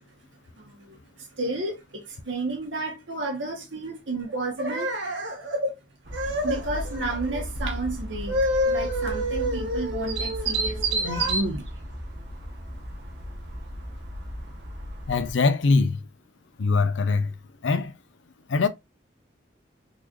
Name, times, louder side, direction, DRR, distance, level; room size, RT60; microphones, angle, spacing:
voice 1, 0.6-5.7 6.1-11.6, right 1 dB, 85° right, 1.2 m, -29 dB
sound 1, 6.0-15.3, right 2 dB, 65° right, 1.1 m, -33 dB
voice 2, 15.1-16.0 16.6-17.3 17.6-17.9 18.5-18.7, left 4 dB, 85° left, 0.5 m, -22 dB
3.9 x 3.1 x 2.4 m
head